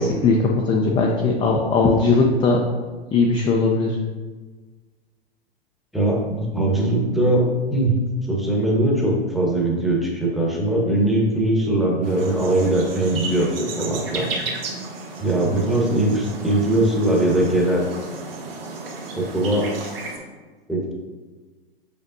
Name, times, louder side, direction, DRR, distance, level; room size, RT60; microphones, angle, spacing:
voice 1, 0.0-2.6 3.1-4.0, left 3 dB, 15° left, 0 dB, 0.5 m, -19 dB
voice 2, 5.9-8.0 8.3-14.3 15.2-17.8 19.1-19.7 20.7-20.9, right 1 dB, ahead, -2 dB, 1.1 m, -21 dB
sound 1, 12.0-20.2, right 3 dB, 65° right, 1.5 m, -34 dB
6.6 x 5.4 x 2.6 m, 1.3 s
figure-of-eight pair, 105°, 31 cm